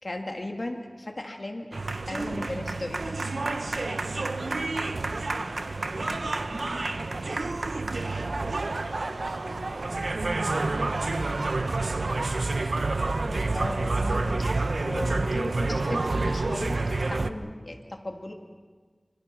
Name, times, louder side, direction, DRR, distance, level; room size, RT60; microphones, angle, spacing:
voice 1, 0.0-1.8 2.1-3.2 13.5-18.3, left 1 dB, 55° left, 3 dB, 2.6 m, -36 dB
sound 1, 1.7-17.3, right 3 dB, 85° right, 0.8 m, -29 dB
voice 2, 4.3-7.3 8.0-9.7 10.3-13.4, right 1 dB, 65° right, 2 dB, 5.3 m, -48 dB
25.0 x 24.5 x 6.1 m, 1.5 s
wide cardioid pair, 50°, 0 cm